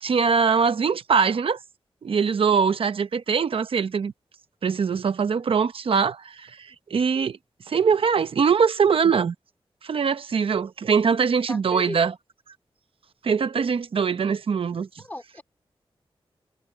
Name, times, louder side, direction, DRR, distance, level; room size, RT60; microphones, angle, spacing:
voice 1, 0.0-1.6 2.0-4.1 4.6-7.4 7.7-9.3 9.8-12.1 13.2-14.9, right 6 dB, 70° right, 0.9 m, -22 dB
voice 2, 11.5-12.0 15.0-15.4, left 1 dB, 15° left, 3.0 m, -35 dB
wide cardioid pair, 135°, 10 cm